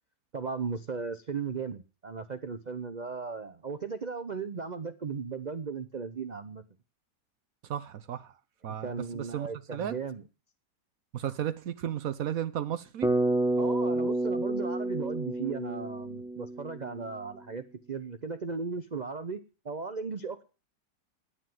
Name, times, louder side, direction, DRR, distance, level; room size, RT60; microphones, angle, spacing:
voice 1, 0.3-6.6 8.7-10.2 13.6-20.4, right 5 dB, 90° right, 10 dB, 0.3 m, -36 dB
voice 2, 7.7-8.3 8.6-10.0 11.1-13.1, right 10 dB, 60° right, 13 dB, 1.0 m, -34 dB
Bass guitar, 13.0-17.1, right 2 dB, 5° right, 1.3 m, -29 dB
10.0 x 9.2 x 7.6 m, 0.34 s
omnidirectional pair, 1.9 m